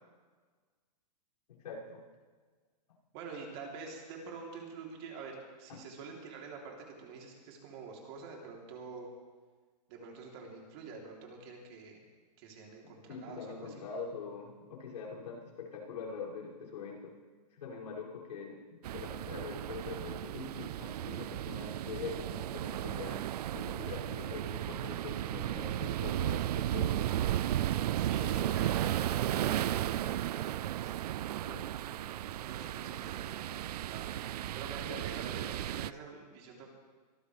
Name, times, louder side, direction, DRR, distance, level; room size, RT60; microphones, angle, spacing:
voice 1, 1.5-2.0 5.7-5.9 12.8-17.1 17.5-23.2 23.5-26.9 28.0-28.5 31.4-31.7 34.9-35.0, left 5 dB, 75° left, -5 dB, 6.2 m, -44 dB
voice 2, 3.1-9.1 9.9-12.0 12.4-13.8 27.9-30.5 30.7-31.0 32.5-34.1 34.5-36.7, right 5 dB, 40° right, -1 dB, 3.3 m, -47 dB
sound 1, 18.8-35.9, right 12 dB, 65° right, 0.4 m, -34 dB
24.0 x 13.5 x 3.4 m, 1.5 s
hypercardioid pair, 155°, 21 cm